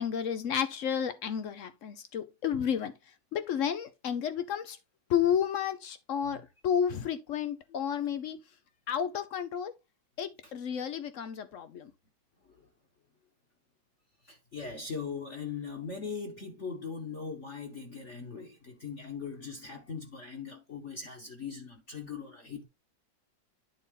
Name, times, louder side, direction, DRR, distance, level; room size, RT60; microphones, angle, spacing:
voice 1, 0.0-2.9 3.3-4.8 5.1-8.4 8.9-9.7 10.2-11.9, left 8 dB, 80° left, 0.6 m, -31 dB
voice 2, 14.2-22.6, left 5 dB, 40° left, 1.3 m, -40 dB
10.0 x 4.1 x 3.7 m
omnidirectional pair, 2.2 m